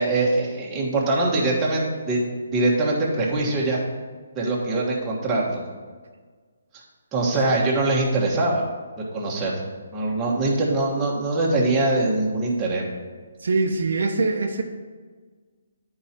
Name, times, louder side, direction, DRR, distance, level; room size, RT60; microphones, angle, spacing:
voice 1, 0.0-3.8 4.3-5.6 7.1-8.7 9.1-9.6 9.9-12.9, right 2 dB, 15° right, -4 dB, 1.4 m, -23 dB
voice 2, 13.4-14.6, right 3 dB, 70° right, 4 dB, 0.8 m, -23 dB
10.0 x 4.8 x 4.3 m, 1.5 s
hypercardioid pair, 160°, 0 cm